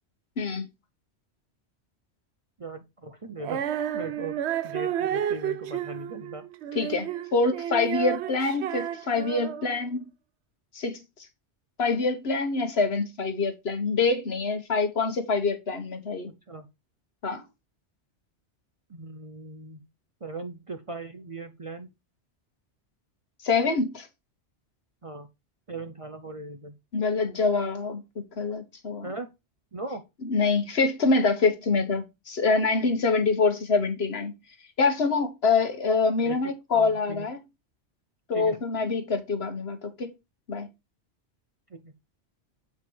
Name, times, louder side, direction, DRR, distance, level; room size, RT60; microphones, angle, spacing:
voice 1, 2.6-4.4 4.6-6.4 16.5-16.7 18.9-19.8 20.2-21.9 25.0-25.3 25.7-26.8 29.0-29.3 29.7-30.0 36.2-36.4 36.7-37.3 38.3-38.6 41.7-41.9, right 3 dB, 35° right, 0.7 m, -38 dB
Female singing, 3.4-9.8, right 10 dB, 70° right, 0.8 m, -31 dB
voice 2, 6.7-7.1 7.3-10.0 10.7-11.0 11.8-16.3 17.2-17.4 23.4-24.1 26.9-28.0 28.4-29.1 30.3-34.3 34.8-37.4 38.3-40.1 40.5-40.7, left 4 dB, 60° left, 1.4 m, -25 dB
7.6 x 4.6 x 4.4 m
omnidirectional pair, 1.2 m